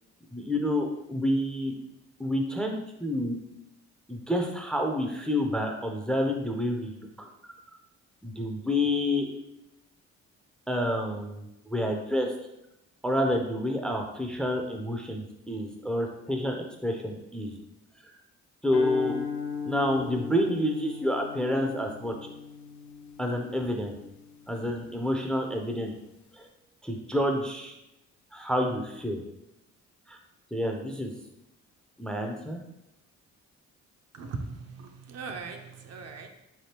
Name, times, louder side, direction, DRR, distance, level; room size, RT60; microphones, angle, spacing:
voice 1, 0.3-1.7 2.2-3.4 4.1-7.3 8.2-9.3 10.7-12.3 13.0-17.6 18.6-19.1 19.7-22.2 23.2-24.0 24.5-25.9 26.3-26.5 26.8-27.7 28.3-29.2 30.1-30.2 30.5-31.1 32.0-32.6, left 1 dB, 5° left, 2 dB, 0.4 m, -29 dB
sound 1, 18.7-25.1, left 6 dB, 70° left, 0.6 m, -38 dB
voice 2, 34.1-36.3, right 4 dB, 55° right, 4 dB, 0.6 m, -39 dB
3.7 x 3.3 x 2.8 m, 0.87 s
cardioid pair, 90°, 30 cm